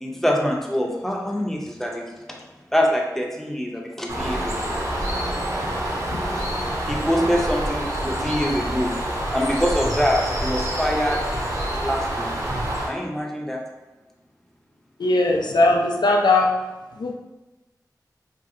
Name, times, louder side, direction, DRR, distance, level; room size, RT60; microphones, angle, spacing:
voice 1, 0.0-2.4 2.7-4.7 6.8-9.0 9.3-11.2 11.8-12.3 12.9-13.6, equal, 5° left, -1 dB, 0.5 m, -24 dB
Bird, 4.1-12.9, right 1 dB, 45° right, 0.6 m, -27 dB
voice 2, 15.0-16.5 17.0-17.1, left 2 dB, 85° left, 1 dB, 0.4 m, -19 dB
3.1 x 2.6 x 2.5 m, 1.1 s
wide cardioid pair, 80°, 7 cm